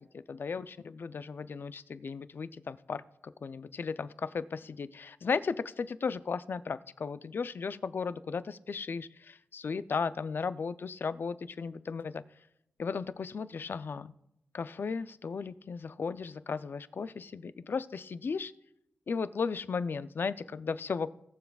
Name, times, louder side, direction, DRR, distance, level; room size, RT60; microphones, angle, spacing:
voice 1, 0.3-12.2 12.8-14.1 14.5-18.5 19.1-21.1, left 5 dB, 60° left, 14 dB, 0.4 m, -35 dB
19.5 x 7.0 x 2.3 m, 0.84 s
wide cardioid pair, 90°, 4 cm